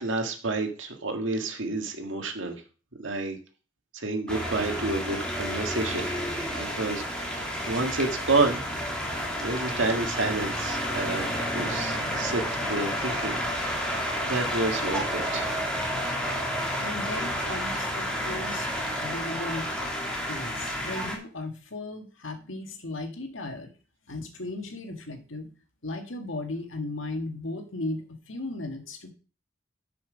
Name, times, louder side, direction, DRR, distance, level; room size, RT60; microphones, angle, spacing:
voice 1, 0.0-2.6 3.0-3.4 3.9-6.1 6.6-8.6 9.4-15.6, right 3 dB, 80° right, 4 dB, 1.9 m, -30 dB
sound 1, 4.3-21.2, equal, 5° left, 2.8 m, -30 dB
voice 2, 16.8-19.7 20.3-23.7 24.1-25.5 25.8-29.1, left 2 dB, 85° left, 5 dB, 1.7 m, -36 dB
10.5 x 5.8 x 5.1 m, 0.37 s
head